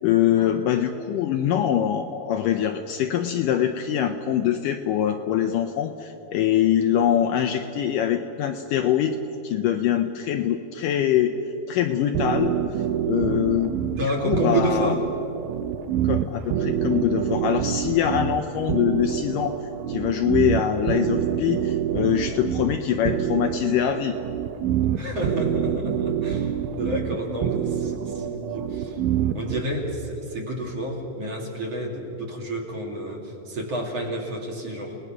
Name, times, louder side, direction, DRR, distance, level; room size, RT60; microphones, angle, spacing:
voice 1, 0.0-9.2 9.4-11.3 11.7-12.5 13.0-13.8 14.2-14.9 16.0-19.6 19.9-24.2, left 10 dB, 75° left, 6 dB, 2.1 m, -23 dB
sound 1, 12.1-29.6, right 9 dB, 70° right, 2.3 m, -26 dB
voice 2, 13.8-15.0 24.9-29.0 29.3-35.0, equal, 45° right, 1 dB, 3.4 m, -30 dB
30.0 x 19.5 x 6.0 m, 2.8 s
omnidirectional pair, 4.4 m